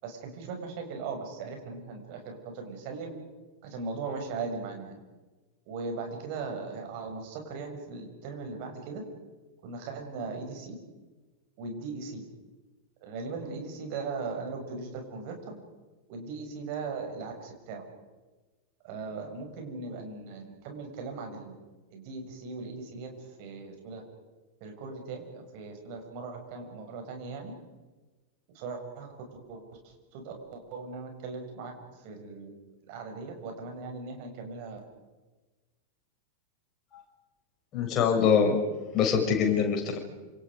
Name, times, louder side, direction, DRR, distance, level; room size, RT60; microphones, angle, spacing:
voice 1, 0.0-3.1 3.6-4.9 5.7-9.0 9.6-10.8 11.6-12.2 13.0-15.6 16.1-17.8 18.8-21.6 21.9-24.0 24.6-27.5 28.5-32.5 32.9-34.8, right 4 dB, 45° right, 3 dB, 6.9 m, -39 dB
voice 2, 37.7-38.6 38.9-40.0, left 7 dB, 30° left, 2 dB, 6.9 m, -24 dB
29.0 x 27.5 x 5.2 m, 1.2 s
figure-of-eight pair, 90°, 0 cm